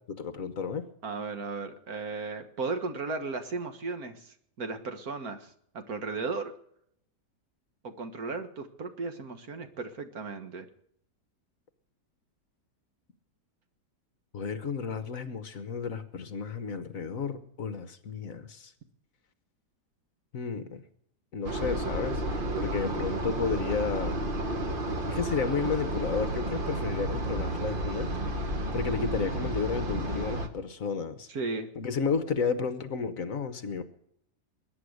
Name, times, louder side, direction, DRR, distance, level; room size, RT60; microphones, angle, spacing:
voice 1, 0.2-0.9 14.3-18.7 20.3-20.8 21.3-22.2 22.6-24.2 25.1-28.1 28.7-31.3 31.8-33.8, left 5 dB, 55° left, 11 dB, 1.4 m, -32 dB
voice 2, 1.0-5.5 5.7-6.5 7.8-10.7 31.3-31.7, right 3 dB, 60° right, 7 dB, 1.9 m, -35 dB
sound 1, 21.4-30.5, right 1 dB, 35° right, 1.4 m, -32 dB
21.0 x 10.0 x 6.5 m, 0.70 s
omnidirectional pair, 1.8 m